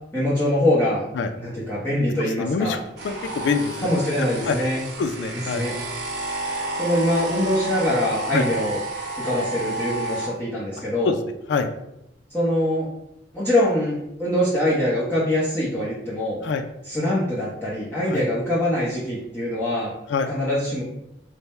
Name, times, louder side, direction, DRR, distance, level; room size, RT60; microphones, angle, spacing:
voice 1, 0.1-1.0 1.4-2.8 3.8-4.8 5.5-5.7 6.8-8.8 9.2-11.1 12.3-12.9 13.3-16.4 16.9-19.9 20.3-20.8, left 1 dB, 10° left, -9 dB, 0.7 m, -23 dB
voice 2, 2.2-3.8 4.2-4.6 5.0-5.7 8.3-8.5 11.1-11.2 11.5-11.7 16.4-16.6 18.1-18.2 20.1-20.3, left 5 dB, 75° left, 7 dB, 0.3 m, -25 dB
sound 1, 3.0-10.3, right 1 dB, 65° right, 0.8 m, -31 dB
3.3 x 2.1 x 4.2 m, 0.84 s
head